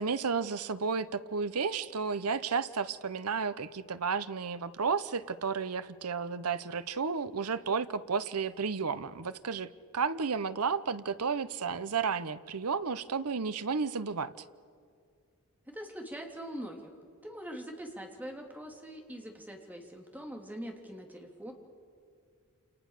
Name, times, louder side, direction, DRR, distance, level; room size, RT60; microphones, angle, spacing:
voice 1, 0.0-14.3, right 5 dB, 80° right, 14 dB, 0.9 m, -32 dB
voice 2, 15.7-16.9 17.2-21.5, equal, 10° right, 2 dB, 3.4 m, -43 dB
28.5 x 28.0 x 6.7 m, 2.2 s
head